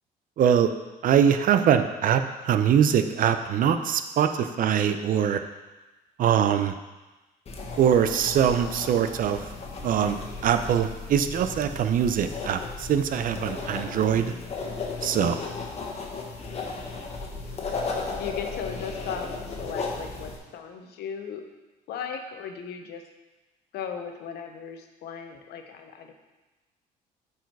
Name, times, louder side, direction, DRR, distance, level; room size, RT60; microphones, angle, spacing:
voice 1, 0.4-0.7 1.0-5.4 6.2-6.7 7.8-9.5 9.8-10.2 10.4-14.3 15.0-15.4, right 8 dB, 55° right, 9 dB, 0.6 m, -23 dB
sound 1, 7.5-20.4, left 4 dB, 35° left, 1.4 m, -35 dB
voice 2, 15.0-15.3 18.2-21.5 21.9-23.0 23.7-26.1, left 7 dB, 75° left, 5 dB, 1.0 m, -37 dB
8.8 x 4.9 x 4.7 m, 1.2 s
cardioid pair, 110°, 17 cm